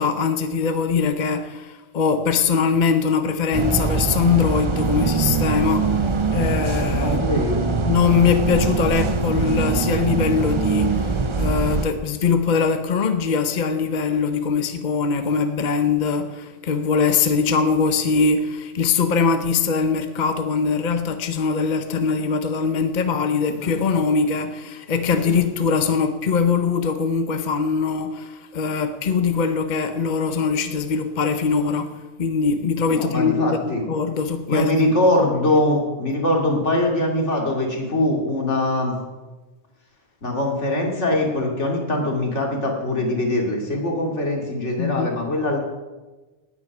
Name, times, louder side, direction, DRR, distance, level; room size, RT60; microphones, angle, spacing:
voice 1, 0.0-7.2 7.8-34.7 44.8-45.1, left 5 dB, 45° left, 0.9 m, -22 dB
sound 1, 3.5-11.9, right 4 dB, 30° right, 0.7 m, -22 dB
voice 2, 7.0-7.6 32.9-33.9 34.5-39.0 40.2-45.6, left 1 dB, 85° left, 3.0 m, -22 dB
18.5 x 8.5 x 6.0 m
omnidirectional pair, 1.2 m